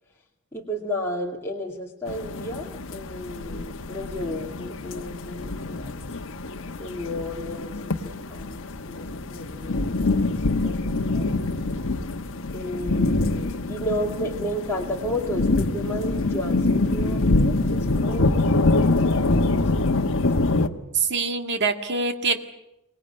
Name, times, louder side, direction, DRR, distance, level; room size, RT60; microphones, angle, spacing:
voice 1, 0.5-6.1 6.4-10.8 11.1-11.3 12.5-20.3 20.6-20.9, equal, 10° left, -3 dB, 2.3 m, -33 dB
sound 1, 2.1-20.7, left 2 dB, 60° left, 1.2 m, -25 dB
voice 2, 20.9-22.4, right 4 dB, 50° right, 6 dB, 1.9 m, -24 dB
25.0 x 19.0 x 8.8 m, 0.91 s
head